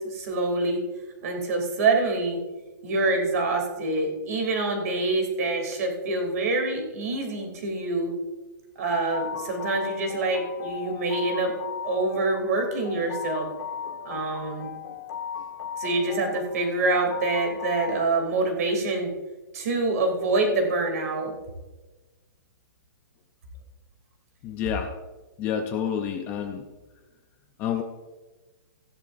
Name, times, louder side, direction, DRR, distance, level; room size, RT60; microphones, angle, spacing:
voice 1, 0.1-0.8 1.2-2.4 2.8-8.1 8.8-11.5 11.8-13.5 14.0-14.7 15.8-19.1 19.5-21.3, right 2 dB, 45° right, 3 dB, 2.9 m, -26 dB
sound 1, 9.1-18.1, left 7 dB, 60° left, 1.6 m, -36 dB
voice 2, 24.4-24.9 25.4-26.6 27.6-27.8, left 8 dB, 15° left, 5 dB, 0.5 m, -28 dB
16.0 x 10.5 x 2.6 m, 1.2 s
hypercardioid pair, 170°, 11 cm